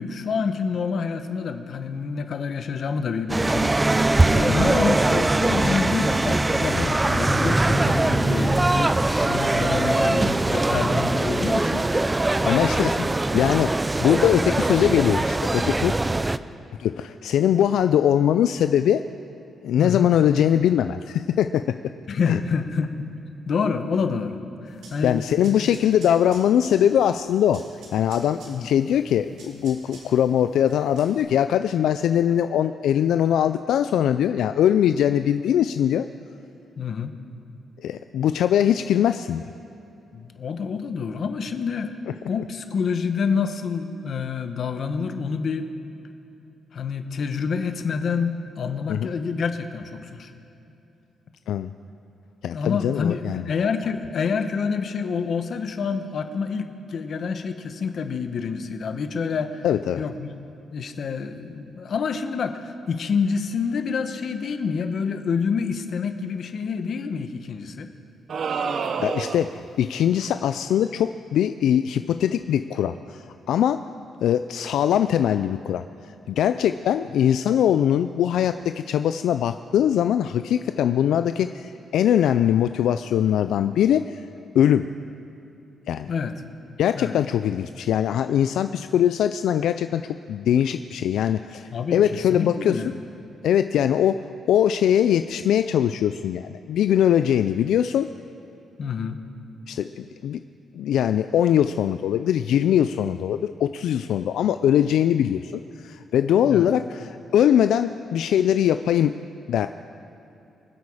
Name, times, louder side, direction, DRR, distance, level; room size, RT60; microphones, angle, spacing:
voice 1, 0.0-4.0 4.2-11.8 12.4-13.5 19.8-20.1 22.1-23.1 23.5-25.6 28.5-28.7 36.8-37.1 40.1-41.9 42.3-45.7 46.7-50.3 52.5-59.7 60.0-60.4 60.7-67.9 86.1-86.3 86.9-87.2 91.7-92.0 92.3-92.9 98.8-99.2 106.5-106.7, left 5 dB, 50° left, 8 dB, 0.9 m, -27 dB
sound 1, 3.3-16.4, right 2 dB, 15° right, 0.3 m, -22 dB
voice 2, 12.5-13.0 13.3-13.7 14.0-16.0 16.8-19.0 19.6-21.8 22.3-22.4 25.0-27.6 27.9-36.1 37.8-39.4 48.9-49.1 51.5-51.7 52.4-53.5 59.6-60.0 68.7-73.8 74.2-75.8 76.3-84.2 84.5-84.9 85.9-86.1 86.8-90.0 90.3-92.8 93.4-98.1 99.7-100.4 100.7-109.1 109.5-109.7, left 10 dB, 85° left, 10 dB, 0.3 m, -21 dB
sound 2, 24.7-31.2, right 2 dB, 85° right, 2.8 m, -49 dB
sound 3, 68.3-69.7, right 5 dB, 50° right, 0.6 m, -28 dB
24.5 x 8.4 x 4.9 m, 2.8 s
cardioid pair, 135°, 0 cm